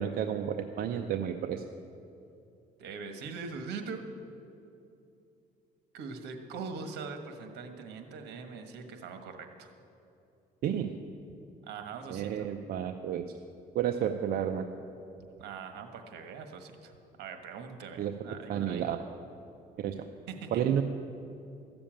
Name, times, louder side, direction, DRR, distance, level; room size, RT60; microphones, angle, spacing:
voice 1, 0.0-1.6 10.6-10.9 12.1-13.3 13.7-14.7 18.0-18.1 18.5-19.0 19.8-20.1 20.5-20.8, right 9 dB, 65° right, 6 dB, 0.6 m, -31 dB
voice 2, 2.8-4.0 5.9-9.7 11.6-12.3 15.4-19.0 20.3-20.6, right 5 dB, 80° right, 6 dB, 1.4 m, -42 dB
14.0 x 7.0 x 8.9 m, 2.7 s
cardioid pair, 110°, 17 cm